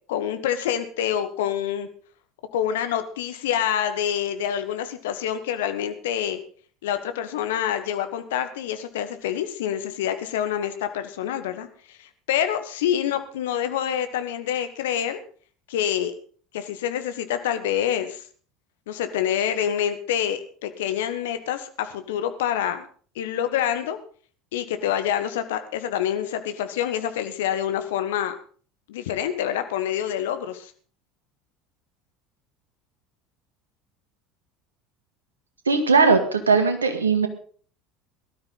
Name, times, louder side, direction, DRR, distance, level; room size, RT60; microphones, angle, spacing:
voice 1, 0.1-1.9 2.5-6.4 6.8-11.7 12.3-15.2 15.7-16.1 16.5-18.2 18.9-22.9 23.1-24.0 24.5-28.3 28.9-30.7, left 10 dB, 70° left, 9 dB, 1.4 m, -26 dB
voice 2, 35.7-37.3, right 4 dB, 85° right, 8 dB, 2.0 m, -19 dB
18.0 x 12.5 x 4.0 m, 0.43 s
figure-of-eight pair, 70°, 0 cm